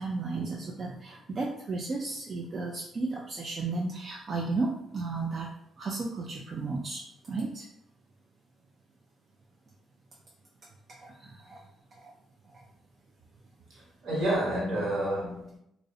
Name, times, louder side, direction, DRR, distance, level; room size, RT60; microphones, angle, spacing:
voice 1, 0.0-5.5 5.8-7.0 7.3-7.7 11.0-11.6 12.0-12.1, right 3 dB, 45° right, -1 dB, 0.3 m, -33 dB
voice 2, 13.7-15.6, right 1 dB, 70° right, -4 dB, 1.1 m, -30 dB
2.4 x 2.0 x 2.6 m, 0.76 s
cardioid pair, 90°, 0 cm